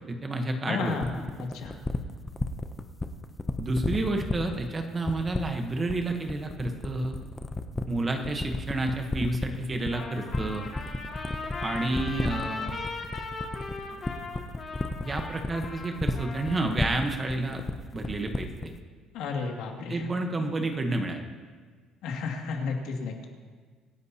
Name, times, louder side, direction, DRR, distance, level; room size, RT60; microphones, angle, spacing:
voice 1, 0.1-1.0 3.6-7.2 7.9-10.7 11.6-12.8 13.9-14.0 15.0-17.6 17.9-18.7 19.9-21.2, right 2 dB, 20° right, 4 dB, 1.0 m, -30 dB
voice 2, 0.7-1.8 19.1-20.1 22.0-23.3, left 4 dB, 70° left, 1 dB, 2.2 m, -33 dB
sound 1, 1.0-18.8, left 2 dB, 10° left, 0.6 m, -31 dB
Trumpet, 9.9-16.9, left 3 dB, 30° left, 2.0 m, -38 dB
25.5 x 10.5 x 2.8 m, 1.5 s
cardioid pair, 175°, 0 cm